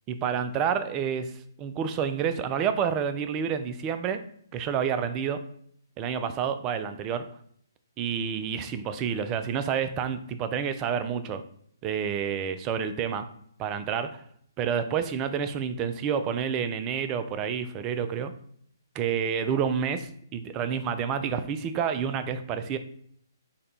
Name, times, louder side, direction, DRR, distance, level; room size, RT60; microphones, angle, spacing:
voice 1, 0.1-1.3 1.6-4.2 4.5-5.4 6.0-7.2 8.0-11.4 11.8-13.3 13.6-14.2 14.6-18.3 19.0-22.8, right 7 dB, 20° right, 10 dB, 0.3 m, -29 dB
4.0 x 2.2 x 3.8 m, 0.65 s
figure-of-eight pair, 135°, 2 cm